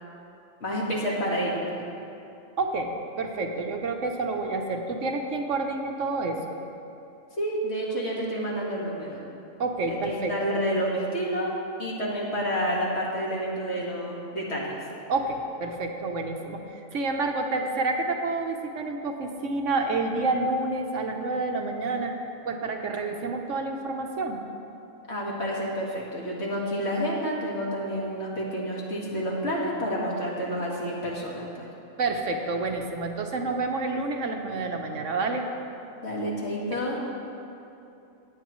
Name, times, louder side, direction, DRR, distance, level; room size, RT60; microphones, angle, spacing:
voice 1, 0.6-1.8 7.4-9.2 9.9-11.5 11.8-14.8 25.1-31.7 36.0-37.0, equal, 55° left, -4 dB, 2.0 m, -29 dB
voice 2, 2.6-6.4 9.6-10.3 15.1-22.1 22.5-24.4 32.0-35.4, right 3 dB, 70° right, 3 dB, 1.2 m, -29 dB
18.0 x 8.3 x 3.1 m, 2.8 s
omnidirectional pair, 1.4 m